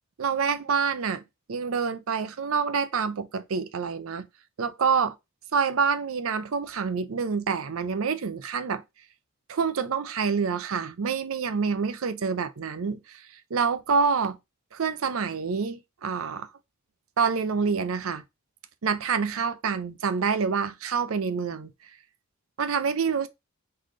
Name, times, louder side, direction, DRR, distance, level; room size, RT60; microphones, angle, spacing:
voice 1, 0.2-1.2 1.5-4.2 4.6-5.1 5.5-8.8 9.5-14.4 14.7-16.5 17.2-18.2 18.8-21.7 22.6-23.3, right 5 dB, 70° right, 0.5 m, -27 dB
3.9 x 3.2 x 3.7 m
head